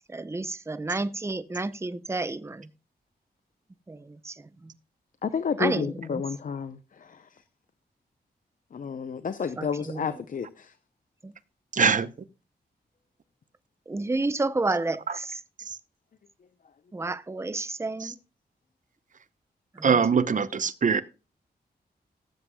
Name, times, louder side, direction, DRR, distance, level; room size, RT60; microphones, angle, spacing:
voice 1, 0.1-2.7 3.9-4.3 5.6-6.2 9.6-10.1 11.2-11.3 13.9-15.4 16.9-18.1 19.8-20.0, right 2 dB, 15° right, 0.6 m, -30 dB
voice 2, 5.2-6.8 8.7-10.7, left 6 dB, 50° left, 0.6 m, -30 dB
voice 3, 11.7-12.1 15.1-15.2 18.0-18.1 19.8-21.0, right 6 dB, 50° right, 0.8 m, -22 dB
18.0 x 7.8 x 2.3 m
cardioid pair, 80°, 17 cm